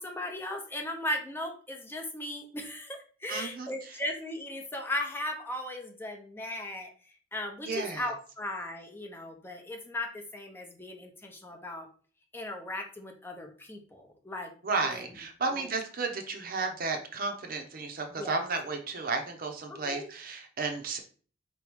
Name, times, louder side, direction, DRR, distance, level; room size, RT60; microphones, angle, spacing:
voice 1, 0.0-6.9 7.3-11.9 12.3-14.5 14.8-15.0 15.5-15.7 18.2-18.3 19.7-20.1, left 1 dB, 10° left, 3 dB, 0.6 m, -37 dB
voice 2, 3.3-4.0 7.7-8.1 14.6-21.0, right 4 dB, 50° right, 4 dB, 0.8 m, -33 dB
4.7 x 3.0 x 3.5 m, 0.41 s
head